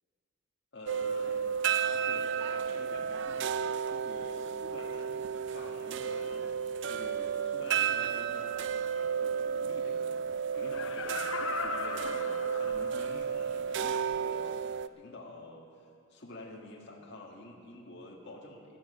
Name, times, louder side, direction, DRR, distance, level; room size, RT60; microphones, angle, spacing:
voice 1, 0.7-1.5 1.8-3.5 3.9-6.5 6.9-14.6 14.9-18.8, left 1 dB, 60° left, -2 dB, 1.8 m, -48 dB
sound 1, 0.9-14.9, right 7 dB, 60° right, 0.4 m, -32 dB
Laughter, 10.6-13.2 13.7-13.8, left 5 dB, 75° left, 0.7 m, -38 dB
16.0 x 12.0 x 5.5 m, 2.3 s
head